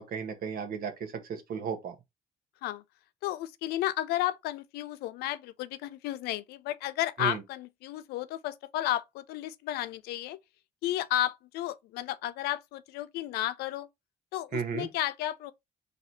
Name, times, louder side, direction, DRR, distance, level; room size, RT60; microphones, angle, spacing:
voice 1, 0.0-1.9 7.2-7.4 14.5-14.9, right 6 dB, 65° right, 1.1 m, -34 dB
voice 2, 3.2-10.4 10.8-13.9 14.3-15.5, left 14 dB, 85° left, 0.4 m, -33 dB
4.1 x 2.7 x 4.3 m
supercardioid pair, 65°, 16 cm